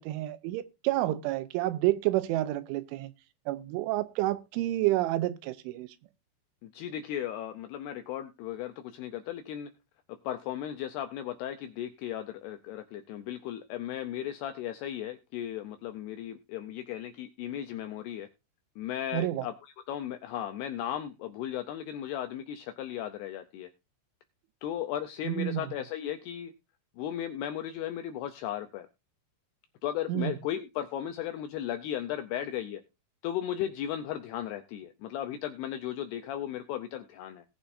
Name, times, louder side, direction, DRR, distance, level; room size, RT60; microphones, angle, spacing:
voice 1, 0.0-3.1 3.5-5.9 19.1-19.4 25.2-25.6 30.1-30.3, right 16 dB, 85° right, 3.2 m, -29 dB
voice 2, 6.6-9.7 10.2-18.3 18.8-23.7 24.6-26.5 27.0-28.9 29.8-32.8 33.2-37.4, left 11 dB, 85° left, 2.3 m, -36 dB
19.0 x 7.0 x 2.6 m
omnidirectional pair, 5.5 m